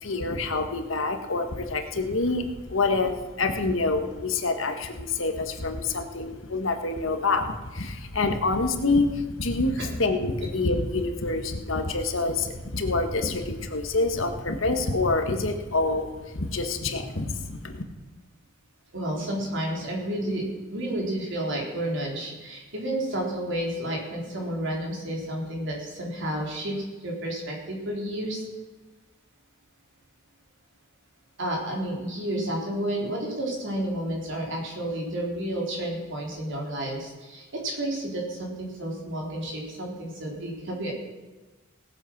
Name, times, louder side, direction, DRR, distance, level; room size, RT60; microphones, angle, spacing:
voice 1, 0.0-16.1 16.3-17.8, left 3 dB, 70° left, 6 dB, 1.5 m, -27 dB
voice 2, 18.9-28.4 31.4-40.9, right 1 dB, 65° right, -1 dB, 4.0 m, -31 dB
18.5 x 7.9 x 6.0 m, 1.2 s
head